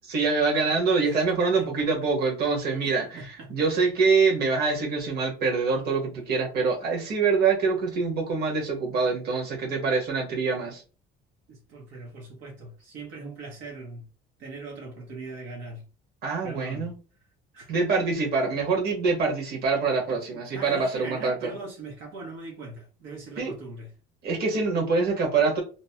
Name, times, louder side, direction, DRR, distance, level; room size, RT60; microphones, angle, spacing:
voice 1, 0.1-10.8 16.2-16.9 17.7-21.5 23.4-23.5 24.2-25.6, right 4 dB, 55° right, 1.2 m, -25 dB
voice 2, 2.8-3.7 11.5-14.1 14.4-15.8 16.4-16.9 17.5-17.7 20.1-23.9, right 3 dB, 80° right, 0.9 m, -41 dB
2.9 x 2.1 x 2.8 m
cardioid pair, 150°, 20 cm